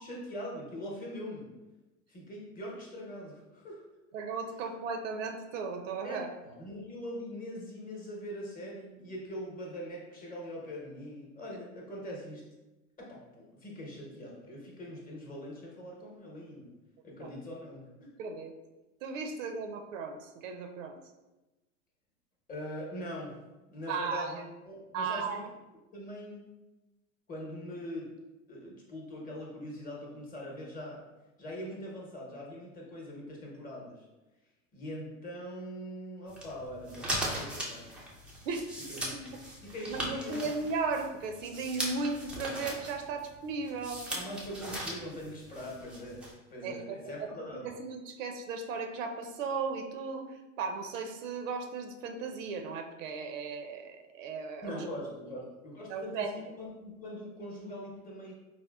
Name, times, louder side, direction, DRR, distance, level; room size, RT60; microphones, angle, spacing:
voice 1, 0.0-1.5 2.1-3.8 6.0-12.4 13.0-16.7 17.0-18.1 22.5-23.4 23.7-25.4 25.9-26.5 27.3-28.1 28.5-31.0 31.4-34.1 34.7-37.9 38.9-39.3 39.6-40.5 44.1-47.7 54.6-58.3, equal, 20° left, -2 dB, 0.9 m, -42 dB
voice 2, 4.1-6.3 17.2-17.3 18.2-18.5 19.0-21.0 23.9-24.3 24.9-25.4 38.4-38.7 39.9-44.0 46.6-54.9 55.9-56.3, right 4 dB, 70° right, 5 dB, 0.5 m, -36 dB
sound 1, 36.3-46.3, right 1 dB, 5° right, 0.3 m, -39 dB
4.2 x 2.1 x 2.3 m, 1.1 s
hypercardioid pair, 100°, 40 cm